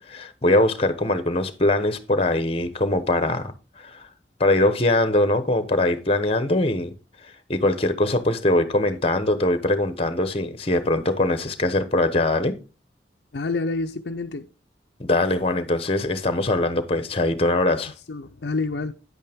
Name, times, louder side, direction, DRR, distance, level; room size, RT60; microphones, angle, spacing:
voice 1, 0.0-3.5 3.8-4.0 4.4-6.9 7.5-12.6 15.0-17.9, left 2 dB, 35° left, 1.0 m, -22 dB
voice 2, 13.3-14.5 18.1-18.9, left 3 dB, 65° left, 0.5 m, -28 dB
9.5 x 8.4 x 3.5 m
head